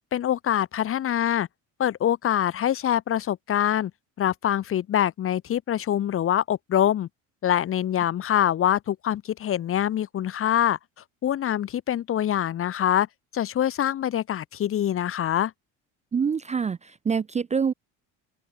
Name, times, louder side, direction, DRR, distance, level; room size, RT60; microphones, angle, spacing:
voice 1, 0.1-1.5 1.8-3.9 4.2-7.1 7.4-10.8 11.2-13.1 13.3-15.5, left 10 dB, 35° left, 0.6 m, -24 dB
voice 2, 16.1-17.7, right 6 dB, 20° right, 0.4 m, -26 dB
open air
supercardioid pair, 85°, 37 cm